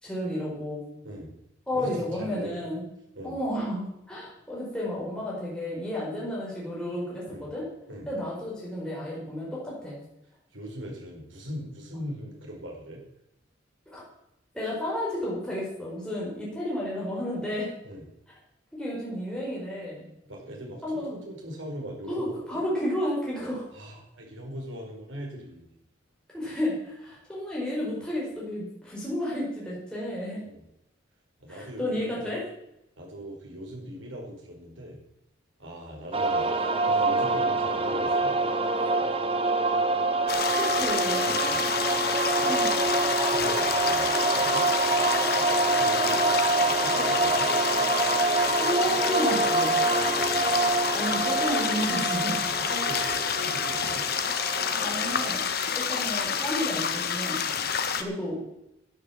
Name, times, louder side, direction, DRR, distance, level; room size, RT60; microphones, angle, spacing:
voice 1, 0.0-0.8 1.7-2.8 3.2-7.6 8.1-10.0 13.9-14.0 14.5-17.7 18.7-20.0 20.8-21.2 22.1-23.7 26.3-30.4 31.5-32.4 40.6-41.3 42.4-42.7 48.6-49.8 50.9-52.4 52.9-53.2 54.8-55.4 55.7-57.4 57.9-58.4, left 1 dB, 5° left, -6 dB, 4.8 m, -32 dB
voice 2, 1.7-2.6 3.1-3.4 7.2-7.5 7.9-8.1 10.5-13.0 17.8-18.0 20.2-22.4 23.7-25.7 30.4-30.6 31.4-32.3 33.0-35.0 35.6-38.4 41.3-42.0 42.4-42.5 43.3-44.7 45.3-47.5 50.0-50.6 52.6-54.0 57.5-57.7, equal, 80° right, -1 dB, 4.9 m, -40 dB
sound 1, 36.1-55.4, right 3 dB, 30° right, 1.1 m, -26 dB
sound 2, 40.3-58.0, left 7 dB, 55° left, 1.2 m, -29 dB
11.5 x 9.4 x 7.2 m, 0.84 s
head